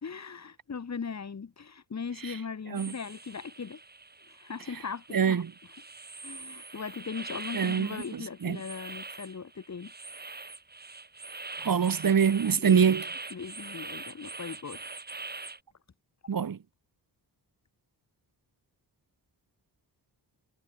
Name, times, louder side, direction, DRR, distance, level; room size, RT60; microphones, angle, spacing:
voice 1, 0.0-3.8 4.3-5.4 6.2-9.9 12.6-12.9 13.3-14.8, left 5 dB, 40° left, 3.8 m, -39 dB
sound 1, 2.7-15.6, right 3 dB, 25° right, 6.0 m, -43 dB
voice 2, 5.1-5.5 7.5-8.6 11.6-13.1 16.3-16.6, right 7 dB, 55° right, 4.1 m, -25 dB
wide cardioid pair, 165°, 40 cm